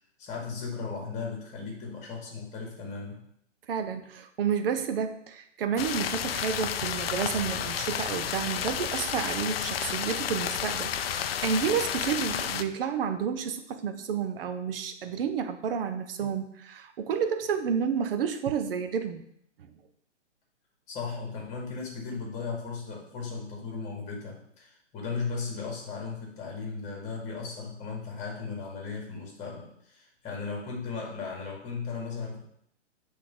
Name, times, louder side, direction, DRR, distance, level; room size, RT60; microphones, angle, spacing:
voice 1, 0.2-3.2 20.9-32.4, left 4 dB, 20° left, -1 dB, 1.8 m, -36 dB
voice 2, 3.7-19.2 19.6-19.7, right 7 dB, 50° right, 8 dB, 0.7 m, -30 dB
sound 1, 5.8-12.6, left 9 dB, 55° left, 0.5 m, -31 dB
7.5 x 3.5 x 3.8 m, 0.72 s
hypercardioid pair, 140°, 36 cm